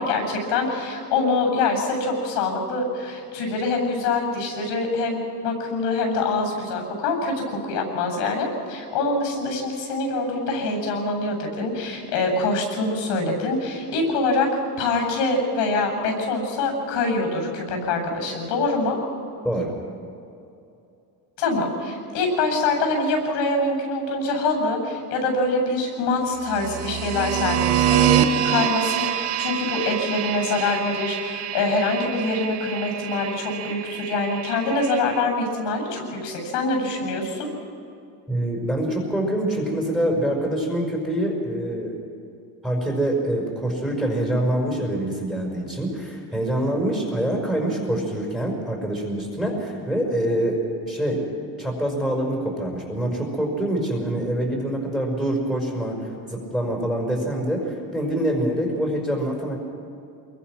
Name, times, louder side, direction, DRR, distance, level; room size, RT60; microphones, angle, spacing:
voice 1, 0.0-14.5 14.8-19.0 21.4-37.5, left 3 dB, 85° left, 3 dB, 7.8 m, -25 dB
voice 2, 19.4-19.8 38.3-42.0 42.6-51.2 51.6-59.6, right 1 dB, ahead, 0 dB, 5.3 m, -25 dB
sound 1, 26.4-35.2, right 10 dB, 75° right, 1.3 m, -26 dB
28.0 x 22.0 x 6.2 m, 2.6 s
cardioid pair, 160°, 42 cm